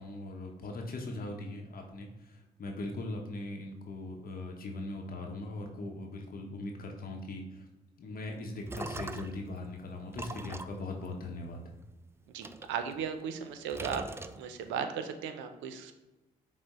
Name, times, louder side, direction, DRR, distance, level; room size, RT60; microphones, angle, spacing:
voice 1, 0.0-7.7 8.0-11.7, left 2 dB, 50° left, 2 dB, 0.8 m, -40 dB
sound 1, 8.3-9.5 10.1-11.9 12.4-13.4 13.7-14.8, right 2 dB, 15° right, 0.3 m, -42 dB
voice 2, 12.3-14.0 14.4-15.9, right 7 dB, 80° right, 8 dB, 0.5 m, -36 dB
5.8 x 2.1 x 4.1 m, 1.1 s
supercardioid pair, 55°, 19 cm